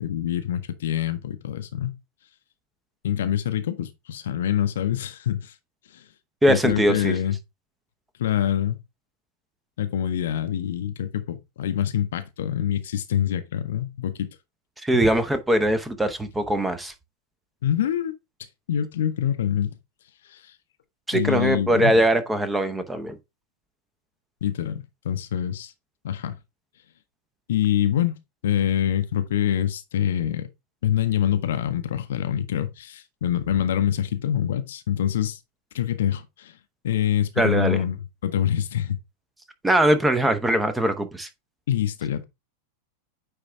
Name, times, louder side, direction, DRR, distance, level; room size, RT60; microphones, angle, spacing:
voice 1, 0.0-2.0 3.0-5.5 5.9-6.0 6.5-7.4 8.2-8.8 9.8-14.3 14.9-15.0 17.6-18.1 18.7-19.7 20.3-20.5 21.1-21.9 24.4-25.7 26.0-26.4 27.5-28.1 28.4-30.5 30.8-35.4 35.7-36.5 36.8-38.0 38.2-39.0 41.7-42.2, left 10 dB, 60° left, 0.7 m, -25 dB
voice 2, 6.4-7.1 14.8-16.9 21.1-23.2 37.4-37.8 39.6-41.3, right 1 dB, 10° right, 0.9 m, -21 dB
9.2 x 3.3 x 3.4 m
figure-of-eight pair, 90°, 0 cm